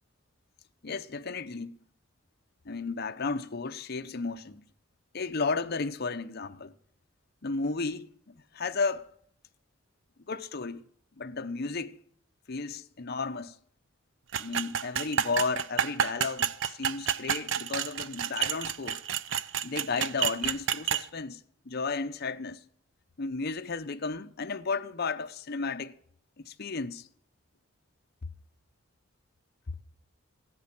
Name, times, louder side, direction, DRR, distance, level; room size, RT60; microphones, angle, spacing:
voice 1, 0.8-1.8 2.6-4.7 5.1-6.7 7.4-9.1 10.3-10.8 11.2-12.0 12.5-13.5 14.4-19.0 19.6-22.6 23.2-26.0 26.4-27.1, left 4 dB, 50° left, 0.7 m, -33 dB
sound 1, 14.3-21.0, right 8 dB, 65° right, 0.6 m, -30 dB
15.0 x 11.5 x 6.0 m
head